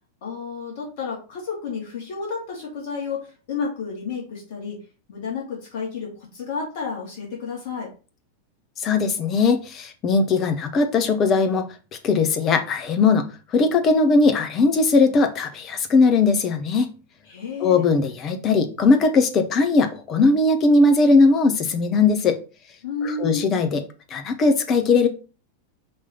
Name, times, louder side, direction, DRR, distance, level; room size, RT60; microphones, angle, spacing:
voice 1, 0.2-4.8 5.1-7.9 17.3-17.8 22.8-23.5, left 5 dB, 50° left, -3 dB, 2.3 m, -31 dB
voice 2, 8.8-11.7 12.0-13.2 13.5-16.9 17.6-22.4 23.0-23.8 24.1-25.1, left 3 dB, 30° left, 7 dB, 1.1 m, -19 dB
5.3 x 3.3 x 5.6 m, 0.34 s
figure-of-eight pair, 90°, 0 cm